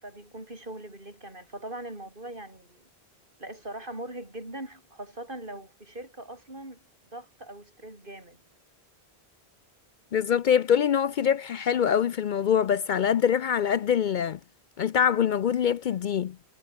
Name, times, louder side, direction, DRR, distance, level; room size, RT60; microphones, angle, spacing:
voice 1, 0.0-2.8 3.4-6.9 7.1-8.4, right 1 dB, 55° right, 6.0 m, -41 dB
voice 2, 10.1-14.4 14.8-16.4, left 8 dB, 60° left, 0.6 m, -24 dB
omnidirectional pair, 1.1 m